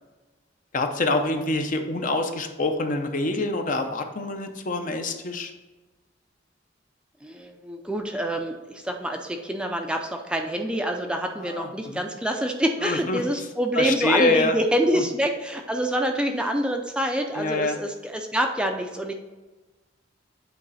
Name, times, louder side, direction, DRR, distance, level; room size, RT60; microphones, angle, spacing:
voice 1, 0.7-5.5 11.4-12.0 12.8-13.2 13.7-14.6 14.9-15.0 17.3-17.8, left 2 dB, 45° left, 6 dB, 0.6 m, -26 dB
voice 2, 7.2-19.1, equal, 5° right, 3 dB, 0.4 m, -26 dB
8.2 x 3.2 x 4.0 m, 1.2 s
head